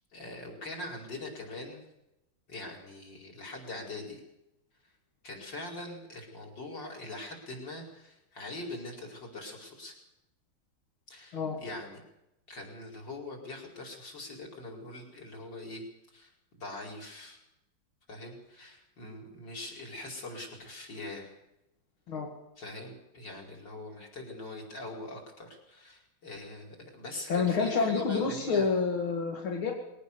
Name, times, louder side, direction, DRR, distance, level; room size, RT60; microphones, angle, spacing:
voice 1, 0.1-1.8 2.5-4.2 5.2-10.0 11.1-12.0 12.5-15.8 16.1-17.4 18.1-21.3 22.6-28.8, left 2 dB, 60° left, -1 dB, 5.8 m, -42 dB
voice 2, 27.3-29.7, left 5 dB, 90° left, 0 dB, 3.1 m, -28 dB
22.5 x 18.0 x 7.0 m, 0.88 s
omnidirectional pair, 2.2 m